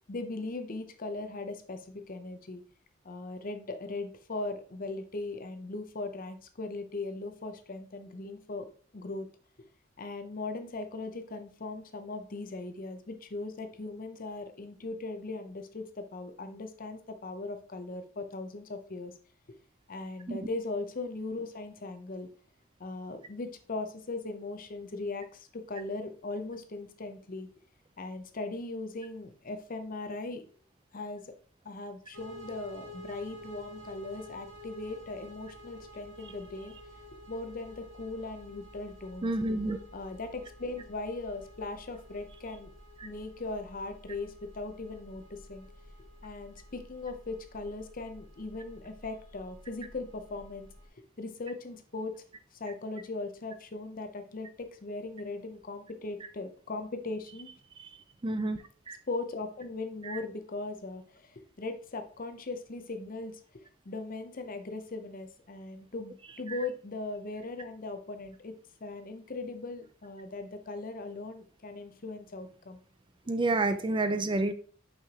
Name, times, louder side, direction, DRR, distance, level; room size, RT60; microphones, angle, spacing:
voice 1, 0.0-2.6 3.0-8.7 8.9-9.3 10.0-19.1 19.9-22.3 22.8-27.5 28.0-30.4 30.9-31.3 31.6-36.7 37.3-39.3 39.9-42.7 43.0-45.7 46.2-50.7 51.2-52.2 52.5-57.5 59.1-68.6 68.8-72.8, left 3 dB, 45° left, 8 dB, 0.7 m, -39 dB
sound 1, 32.1-50.9, left 1 dB, 65° right, 1.9 m, -51 dB
voice 2, 39.2-39.8 57.8-57.9 58.2-58.6 58.9-59.0 60.1-60.2 73.3-74.5, right 2 dB, 25° right, 9 dB, 0.4 m, -29 dB
5.7 x 5.7 x 2.9 m, 0.42 s
head